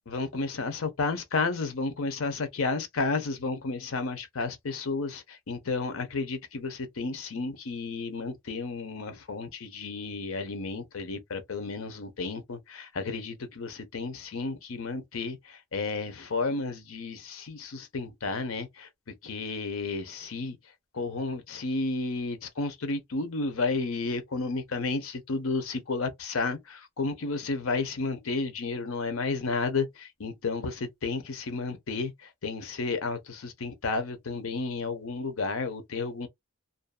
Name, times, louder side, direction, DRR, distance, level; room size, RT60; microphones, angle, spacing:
voice 1, 0.1-18.9 19.2-20.6 20.9-32.1 32.4-36.3, left 3 dB, 90° left, 0.7 m, -32 dB
2.6 x 2.3 x 2.2 m
head